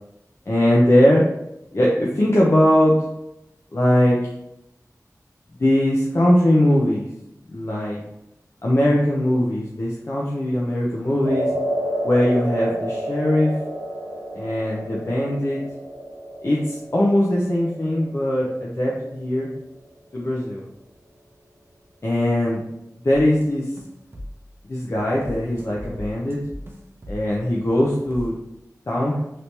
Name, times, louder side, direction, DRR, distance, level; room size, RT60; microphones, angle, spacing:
voice 1, 0.5-1.2 1.7-3.0 3.7-4.2 5.6-7.1 7.5-8.0 8.6-11.5 12.0-13.5 14.3-15.6 16.4-19.5 20.1-20.6 22.0-22.6 23.0-23.7 24.6-26.4 27.1-28.3 28.9-29.2, left 1 dB, 45° left, -4 dB, 0.5 m, -20 dB
sound 1, 11.2-19.6, equal, 65° right, 0.8 m, -30 dB
sound 2, 23.4-23.5 23.8-24.5 24.9-28.3, equal, 35° right, 0.6 m, -39 dB
3.2 x 2.9 x 2.8 m, 0.86 s
wide cardioid pair, 60°, 7 cm